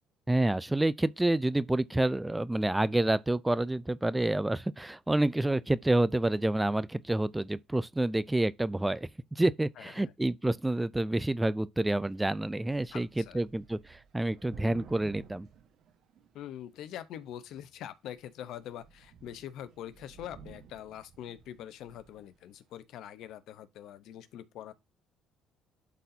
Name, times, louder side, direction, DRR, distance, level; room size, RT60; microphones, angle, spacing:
voice 1, 0.3-15.5, right 1 dB, 10° right, 0.3 m, -28 dB
voice 2, 9.8-10.1 12.9-13.4 16.3-24.7, left 11 dB, 70° left, 0.7 m, -44 dB
Thunder / Rain, 12.1-12.2 12.4-16.6 17.3-17.7 18.2-18.3 18.6-22.3, right 7 dB, 65° right, 1.2 m, -54 dB
11.5 x 4.2 x 2.7 m
cardioid pair, 115°, 0 cm